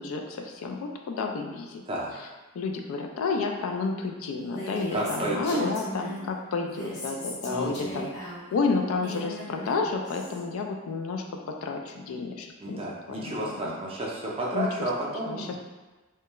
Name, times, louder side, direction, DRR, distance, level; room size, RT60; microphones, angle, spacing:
voice 1, 0.0-1.8 2.5-8.1 8.5-11.2 11.6-13.8 14.5-14.7 15.3-15.6, left 4 dB, 70° left, 3 dB, 0.3 m, -31 dB
Female speech woman speaking, 4.4-6.3 6.6-10.4, equal, 55° left, 0.8 m, -38 dB
voice 2, 4.9-5.7 7.5-8.0 12.6-15.6, right 1 dB, 25° right, -4 dB, 0.4 m, -31 dB
2.3 x 2.2 x 2.9 m, 1.2 s
head